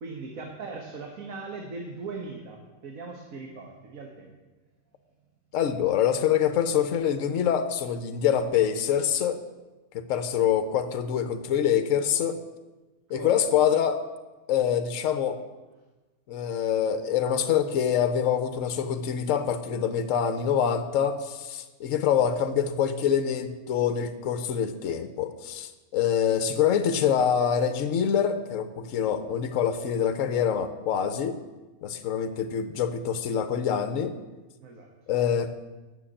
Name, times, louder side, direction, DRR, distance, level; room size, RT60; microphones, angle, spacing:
voice 1, 0.0-4.4 13.1-13.5 34.6-34.9, right 3 dB, 70° right, 1 dB, 1.6 m, -39 dB
voice 2, 5.5-9.4 9.9-12.4 13.1-14.0 14.5-15.4 16.3-31.4 31.8-34.1 35.1-35.5, left 8 dB, 65° left, 10 dB, 1.1 m, -25 dB
9.3 x 6.6 x 8.6 m, 1.2 s
omnidirectional pair, 1.5 m